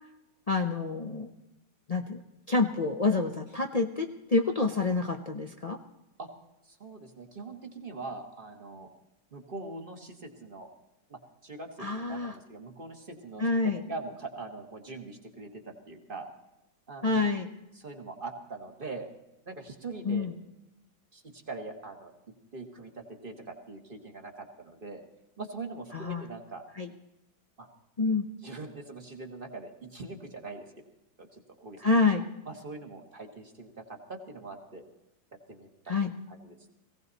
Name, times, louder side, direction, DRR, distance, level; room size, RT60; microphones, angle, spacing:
voice 1, 0.5-1.3 1.9-2.2 2.5-5.8 11.8-12.3 13.4-13.8 17.0-17.5 20.0-20.3 25.9-26.2 26.8-26.9 28.0-28.3 31.8-32.3 35.9-36.1, left 3 dB, 70° left, 3 dB, 0.3 m, -27 dB
voice 2, 6.6-8.9 9.3-10.7 11.1-16.3 16.9-17.3 17.7-19.1 19.5-20.3 21.1-22.1 22.5-25.0 25.4-26.6 27.6-27.7 28.4-30.7 31.2-32.0 32.5-34.8 35.5-36.0 36.3-36.6, right 3 dB, 30° right, 4 dB, 1.7 m, -42 dB
19.0 x 17.0 x 4.1 m, 0.91 s
omnidirectional pair, 2.1 m